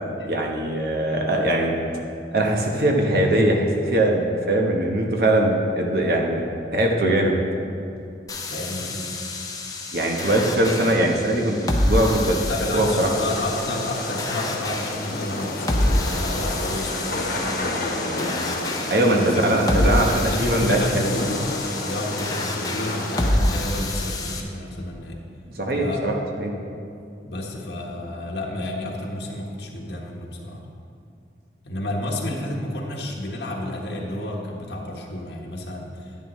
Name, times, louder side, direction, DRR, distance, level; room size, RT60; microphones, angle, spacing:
voice 1, 0.3-1.7 2.3-6.4 6.7-7.3 9.9-12.4 12.7-13.1 18.9-21.1 25.6-26.1 26.4-26.5, right 1 dB, 60° right, 0 dB, 1.1 m, -21 dB
sound 1, 8.3-24.4, left 1 dB, 20° left, 0.7 m, -28 dB
voice 2, 8.5-9.2 12.5-18.8 19.2-19.4 19.7-19.9 20.3-21.5 21.8-25.2 25.7-26.0 27.2-30.6 31.6-36.3, left 1 dB, 75° left, -1 dB, 1.3 m, -31 dB
sound 2, 12.8-23.3, left 2 dB, 55° left, 1.3 m, -31 dB
10.5 x 10.5 x 3.2 m, 2.6 s
head